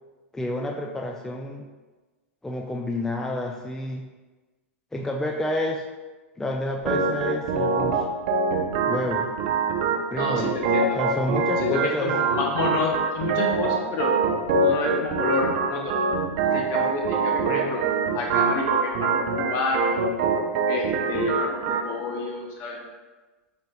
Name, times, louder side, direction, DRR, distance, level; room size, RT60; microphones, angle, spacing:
voice 1, 0.3-1.7 2.4-4.0 4.9-5.8 6.4-8.1 8.9-9.3 10.1-10.6 10.9-12.1, left 1 dB, 5° left, 1 dB, 0.4 m, -29 dB
Organ, 6.9-21.9, right 4 dB, 55° right, 0.6 m, -25 dB
voice 2, 10.2-11.0 11.6-14.2 14.5-16.1 16.5-17.9 18.1-20.0 20.7-22.9, left 3 dB, 45° left, 0 dB, 0.7 m, -29 dB
6.5 x 3.5 x 2.2 m, 1.2 s
hypercardioid pair, 95°, 7 cm